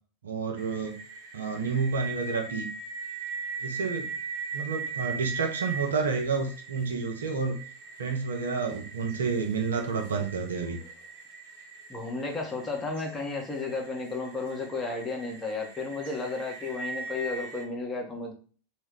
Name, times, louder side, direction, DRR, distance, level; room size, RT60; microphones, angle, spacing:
voice 1, 0.2-1.0 1.3-2.7 3.6-4.1 4.5-7.6 8.0-10.8, right 5 dB, 65° right, 2 dB, 0.5 m, -30 dB
sound 1, 0.6-17.6, right 4 dB, 45° right, 1.0 m, -40 dB
voice 2, 11.9-18.3, left 3 dB, 15° left, 0 dB, 0.7 m, -33 dB
2.2 x 2.1 x 3.6 m, 0.40 s
figure-of-eight pair, 90°, 0 cm